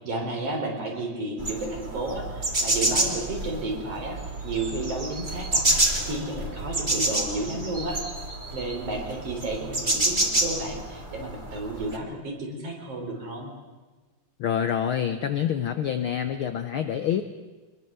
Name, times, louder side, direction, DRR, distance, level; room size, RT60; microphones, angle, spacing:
voice 1, 0.0-4.2 4.4-5.7 6.0-8.0 8.5-13.5, right 2 dB, 55° right, 2 dB, 4.8 m, -32 dB
sound 1, 1.4-12.0, right 1 dB, 15° right, 2.1 m, -28 dB
voice 2, 14.4-17.2, left 9 dB, 65° left, 9 dB, 1.3 m, -26 dB
23.5 x 21.5 x 6.9 m, 1.3 s
omnidirectional pair, 3.3 m